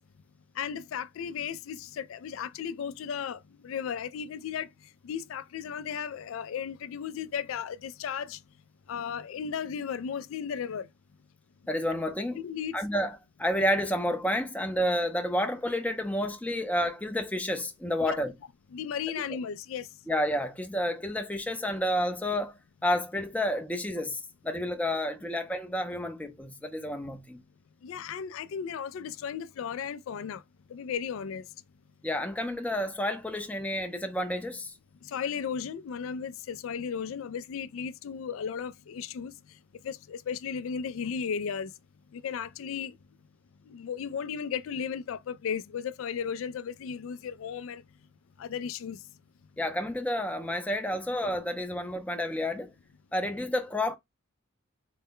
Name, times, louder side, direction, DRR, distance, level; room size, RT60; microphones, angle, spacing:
voice 1, 0.6-4.7 5.0-8.4 8.9-10.9 12.4-12.8 18.1-18.2 18.7-19.9 27.8-30.4 30.7-31.5 35.0-39.3 39.8-41.7 42.1-42.9 43.7-47.8 48.4-49.0, left 7 dB, 75° left, 0.3 m, -35 dB
voice 2, 11.7-12.4 12.7-18.4 20.1-27.4 32.0-34.7 49.6-52.7 53.1-54.0, left 1 dB, 5° left, 0.5 m, -30 dB
4.0 x 2.1 x 3.7 m
head